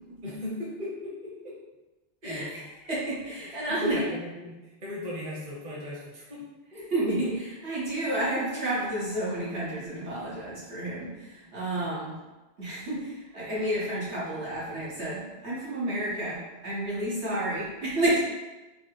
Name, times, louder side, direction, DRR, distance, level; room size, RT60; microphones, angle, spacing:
voice 1, 0.2-1.6 2.2-2.7 3.7-6.4 6.7-7.3 11.5-11.6 11.8-12.0, left 1 dB, 40° right, -5 dB, 1.1 m, -37 dB
voice 2, 2.8-4.0 6.9-7.3 7.6-12.1 12.6-18.2, right 1 dB, 90° right, -9 dB, 2.0 m, -30 dB
4.2 x 2.5 x 4.8 m, 1.1 s
omnidirectional pair, 1.1 m